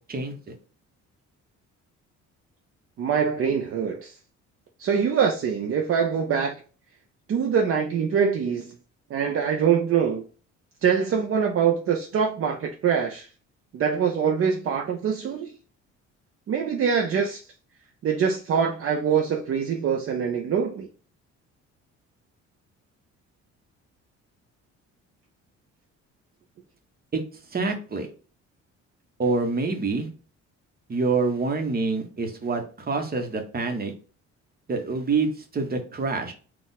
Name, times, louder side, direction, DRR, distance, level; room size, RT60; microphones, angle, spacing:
voice 1, 3.0-4.2 4.8-6.6 7.3-8.8 9.1-10.2 10.8-13.3 13.7-15.5 16.5-17.5 18.0-20.9, right 7 dB, 50° right, 0.6 m, -24 dB
voice 2, 27.5-28.1 29.2-30.1 30.9-33.9 34.7-36.3, right 4 dB, 30° right, 1.1 m, -26 dB
4.2 x 2.5 x 3.9 m
cardioid pair, 115°, 29 cm